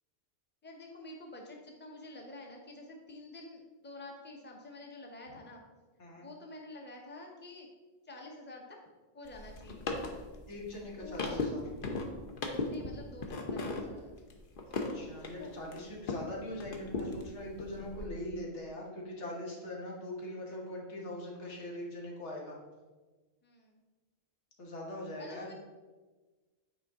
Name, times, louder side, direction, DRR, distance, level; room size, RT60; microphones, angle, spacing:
voice 1, 0.6-5.6 6.2-7.7 8.0-8.8 9.1-9.9 11.0-11.5 12.7-14.1 23.4-23.7 25.2-25.5, left 2 dB, 10° left, 0 dB, 0.9 m, -48 dB
voice 2, 6.0-6.3 10.5-11.6 14.7-22.6 24.6-25.5, left 1 dB, 90° left, -2 dB, 1.7 m, -42 dB
sound 1, 9.2-16.3 16.6-18.1, left 3 dB, 55° left, 0.9 m, -38 dB
8.8 x 4.4 x 3.6 m, 1.3 s
omnidirectional pair, 1.1 m